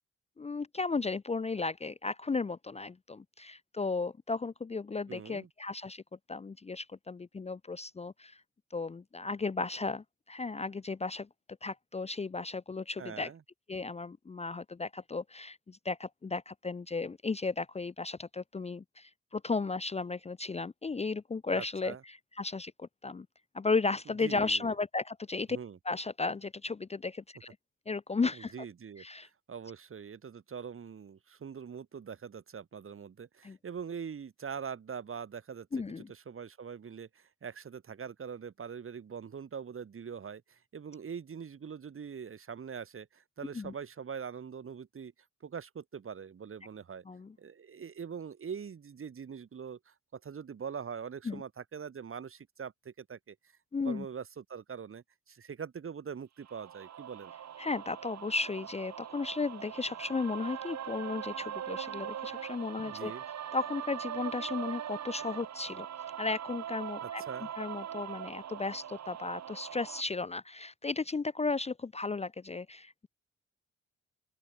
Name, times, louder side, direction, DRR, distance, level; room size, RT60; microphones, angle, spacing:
voice 1, 0.4-6.0 6.3-8.4 8.7-11.3 11.6-13.3 13.7-23.3 23.5-25.6 25.8-27.5 27.9-28.5 29.0-29.3 33.4-33.6 35.7-36.1 43.5-43.7 47.1-47.3 51.3-51.4 53.7-54.1 57.6-63.1 63.5-65.9 66.2-67.2 67.6-73.1, left 3 dB, 20° left, 0.6 m, -35 dB
voice 2, 5.1-5.5 13.0-13.4 21.5-22.0 24.2-24.7 25.5-25.8 28.3-35.7 36.0-45.1 45.4-47.0 47.4-53.4 53.8-57.3 62.8-63.2 67.0-67.5, right 7 dB, 45° right, 2.0 m, -43 dB
sound 1, 56.4-70.0, right 9 dB, 60° right, 2.2 m, -41 dB
open air
supercardioid pair, 60°, 30 cm